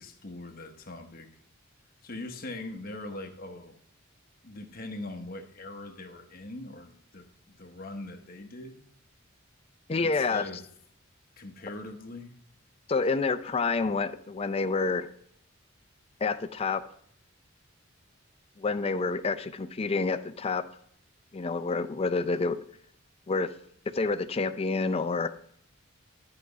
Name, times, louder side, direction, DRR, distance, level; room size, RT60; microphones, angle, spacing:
voice 1, 0.0-1.3 2.0-3.8 4.4-7.3 7.6-8.8 10.0-10.6 11.4-12.3 13.0-13.1, left 2 dB, 45° left, 1.0 m, -41 dB
voice 2, 9.9-10.5 12.9-15.1 16.2-16.8 18.6-20.6 21.3-22.6 23.3-23.5 23.9-25.3, left 4 dB, 30° left, 0.4 m, -28 dB
11.5 x 4.8 x 4.0 m
head